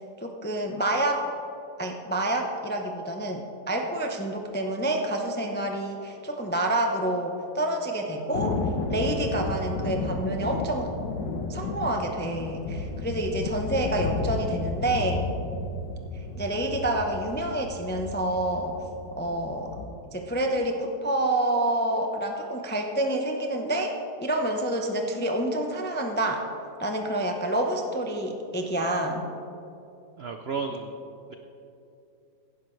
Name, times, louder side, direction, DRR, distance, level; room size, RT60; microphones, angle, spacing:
voice 1, 0.2-1.3 1.8-11.0 11.5-15.3 16.4-18.8 19.2-19.8 20.1-23.9 24.2-26.5 26.8-29.2, right 1 dB, 15° left, 2 dB, 0.3 m, -28 dB
Thunder, 8.3-19.9, left 3 dB, 85° left, 1.6 m, -33 dB
voice 2, 30.2-30.9 31.3-31.4, right 5 dB, 75° right, 5 dB, 0.5 m, -32 dB
16.5 x 11.0 x 3.2 m, 2.8 s
omnidirectional pair, 1.9 m